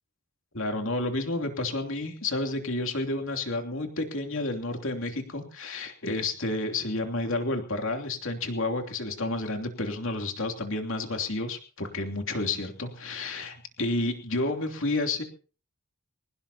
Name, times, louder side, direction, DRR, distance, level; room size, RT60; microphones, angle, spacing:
voice 1, 0.5-15.2, left 2 dB, 60° left, 4 dB, 3.1 m, -30 dB
22.5 x 19.0 x 2.9 m, 0.39 s
head